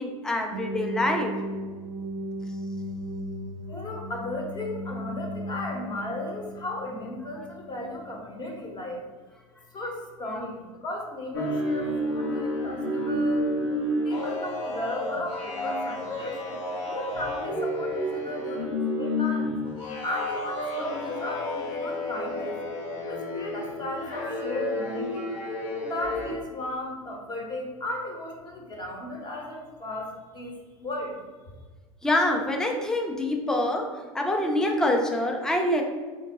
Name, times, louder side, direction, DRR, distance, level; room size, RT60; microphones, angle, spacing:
voice 1, 0.0-1.4 32.0-35.8, left 1 dB, 5° left, 2 dB, 0.4 m, -25 dB
sound 1, 0.5-8.4, equal, 70° right, 0.4 m, -36 dB
voice 2, 3.7-9.0 9.7-13.5 14.0-19.6 20.0-22.6 23.1-25.2 25.8-31.2, left 1 dB, 25° left, 0 dB, 0.9 m, -35 dB
sound 2, 11.3-26.3, left 1 dB, 65° left, 0.8 m, -30 dB
3.6 x 2.6 x 2.8 m, 1.4 s
figure-of-eight pair, 80°, 18 cm